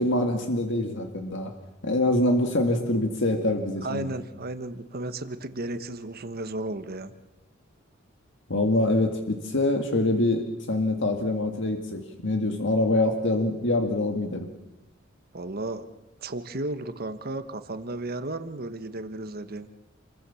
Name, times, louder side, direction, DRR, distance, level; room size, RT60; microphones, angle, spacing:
voice 1, 0.0-1.5 1.8-4.1 8.5-14.5, left 1 dB, 65° left, 4 dB, 2.2 m, -25 dB
voice 2, 3.8-7.1 15.3-15.9 16.2-19.7, right 2 dB, 50° right, 10 dB, 1.3 m, -34 dB
28.0 x 22.0 x 7.1 m, 0.98 s
head